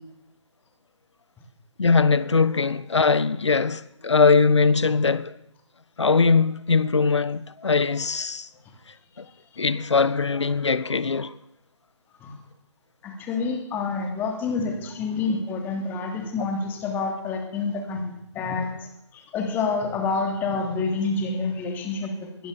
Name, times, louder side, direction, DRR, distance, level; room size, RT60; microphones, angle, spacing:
voice 1, 1.8-5.4 6.0-8.5 9.2-9.3 9.6-11.3, left 4 dB, 65° left, 1.3 m, -21 dB
voice 2, 13.0-22.5, left 4 dB, 10° left, 3.2 m, -28 dB
22.0 x 17.5 x 6.9 m
figure-of-eight pair, 145°, 16 cm